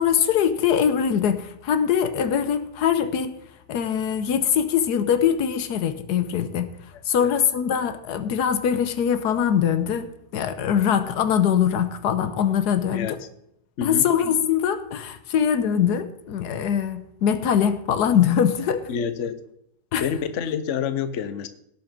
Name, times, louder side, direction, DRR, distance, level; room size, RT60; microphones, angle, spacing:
voice 1, 0.0-3.4 3.7-6.7 7.1-13.2 13.8-18.9 19.9-20.1, left 8 dB, 85° left, 11 dB, 1.4 m, -22 dB
voice 2, 18.9-19.4 20.0-21.5, left 8 dB, 55° left, 11 dB, 1.1 m, -28 dB
17.5 x 5.9 x 5.2 m, 0.76 s
omnidirectional pair, 1.7 m